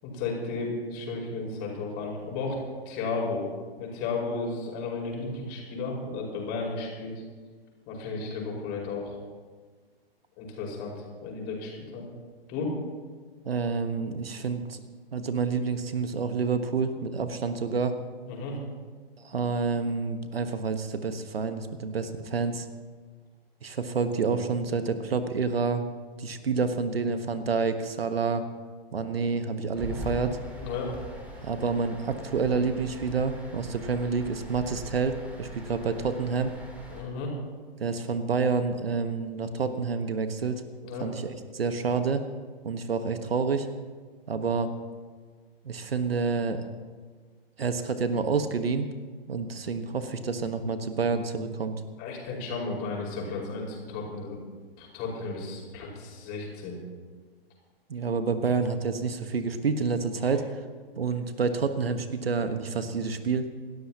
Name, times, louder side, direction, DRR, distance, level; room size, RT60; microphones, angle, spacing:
voice 1, 0.0-3.4 3.8-7.2 7.9-9.2 10.4-12.1 12.5-12.7 18.2-18.6 30.6-30.9 36.9-37.3 40.8-41.1 52.0-54.4 54.8-56.8 60.2-60.3, left 3 dB, 35° left, -1 dB, 5.1 m, -34 dB
voice 2, 13.4-14.8 15.1-18.0 19.2-22.7 23.6-25.9 26.2-28.4 28.9-30.4 31.4-36.5 37.8-40.6 41.0-42.2 42.6-43.7 44.3-44.7 45.6-46.7 47.6-48.9 49.3-51.7 57.9-60.4 61.0-63.5, right 5 dB, 75° right, 9 dB, 1.3 m, -28 dB
sound 1, 29.7-37.0, equal, 5° right, 3.3 m, -42 dB
27.5 x 13.0 x 2.9 m, 1.5 s
figure-of-eight pair, 115°, 30 cm